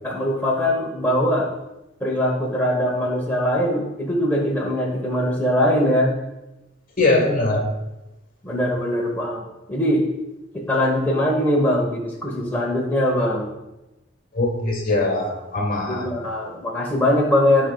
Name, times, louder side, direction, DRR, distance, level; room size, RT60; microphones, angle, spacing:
voice 1, 0.0-1.5 2.0-6.1 8.4-10.1 10.5-13.5 15.9-17.7, left 1 dB, 10° left, -4 dB, 1.0 m, -21 dB
voice 2, 7.0-7.7 14.3-16.1, left 2 dB, 45° left, 1 dB, 1.4 m, -21 dB
12.0 x 5.1 x 2.3 m, 0.98 s
head